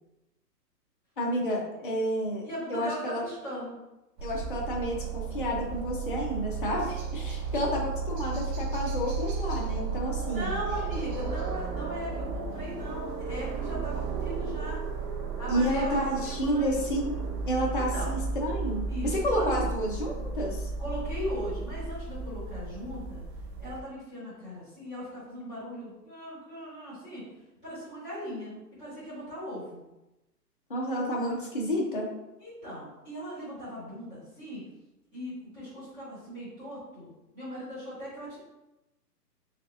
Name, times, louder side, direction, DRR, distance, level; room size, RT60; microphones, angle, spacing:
voice 1, 1.2-2.4 2.7-3.2 4.2-10.6 15.5-17.1 17.5-18.8 19.2-20.7 30.7-32.1, equal, 35° left, -2 dB, 0.4 m, -30 dB
voice 2, 2.4-3.7 10.3-14.8 15.4-16.8 17.7-18.1 18.9-19.5 20.8-23.2 23.6-27.2 27.6-28.5 28.8-29.8 32.4-34.6 35.1-38.4, equal, 5° right, -14 dB, 0.8 m, -38 dB
sound 1, 4.2-23.8, right 4 dB, 80° right, 0.8 m, -34 dB
3.4 x 3.4 x 2.4 m, 0.96 s
hypercardioid pair, 170°, 49 cm